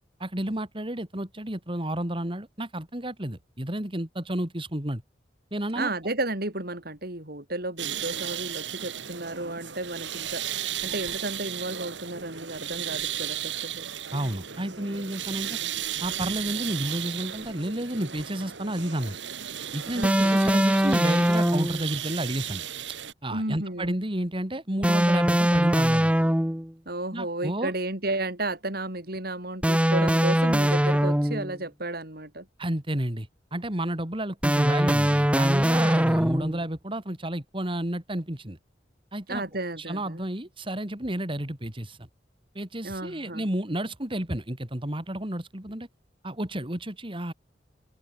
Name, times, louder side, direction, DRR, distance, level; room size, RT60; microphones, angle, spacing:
voice 1, 0.2-5.0 5.5-5.9 14.1-15.6 16.0-19.2 19.7-23.0 23.2-26.1 27.1-27.7 32.6-38.6 39.1-39.4 39.8-42.1 42.5-45.9 46.2-47.3, right 1 dB, 30° right, 3.0 m, -31 dB
voice 2, 5.7-13.9 19.9-20.4 23.3-24.0 26.9-32.5 39.3-40.2 42.8-43.4, right 2 dB, 60° right, 6.4 m, -33 dB
sound 1, 7.8-23.1, right 10 dB, 90° right, 2.0 m, -35 dB
sound 2, 20.0-21.8 24.8-26.7 29.6-31.6 34.4-36.6, equal, 5° right, 1.3 m, -22 dB
open air
head